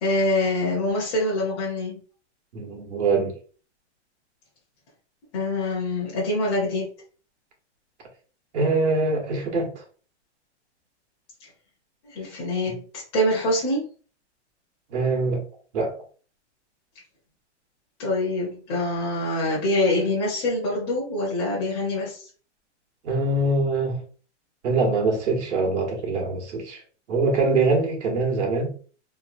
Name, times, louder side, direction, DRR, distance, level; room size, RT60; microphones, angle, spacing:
voice 1, 0.0-2.0 5.3-6.9 12.1-12.8 13.1-13.8 18.0-22.2, left 1 dB, 25° left, 0.7 m, -25 dB
voice 2, 2.5-3.3 8.5-9.8 12.7-12.8 14.9-15.4 15.7-16.0 23.0-24.0 24.6-26.8 27.1-28.7, right 3 dB, 75° right, 1.2 m, -23 dB
3.0 x 2.2 x 2.5 m
hypercardioid pair, 165°, 35 cm